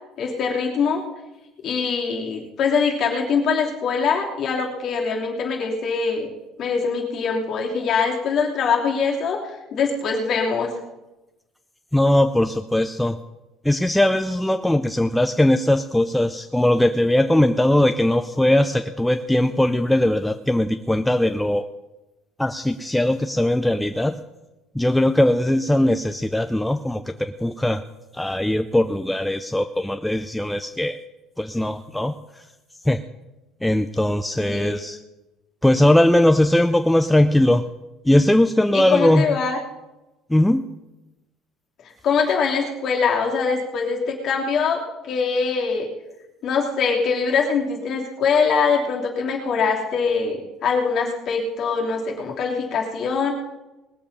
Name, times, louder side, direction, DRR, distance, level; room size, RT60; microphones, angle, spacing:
voice 1, 0.2-1.0 1.6-6.3 6.6-9.4 9.7-10.7 34.4-34.9 38.7-39.6 42.0-45.9 46.4-53.3, left 5 dB, 40° left, -1 dB, 3.0 m, -23 dB
voice 2, 11.9-13.2 13.6-21.6 22.4-24.2 24.8-27.8 28.1-31.0 31.4-32.2 32.9-33.0 33.6-35.0 35.6-37.7 38.0-39.4 40.3-40.7, left 1 dB, 5° left, 8 dB, 0.4 m, -19 dB
19.5 x 7.1 x 6.7 m, 1.0 s
cardioid pair, 170°, 0 cm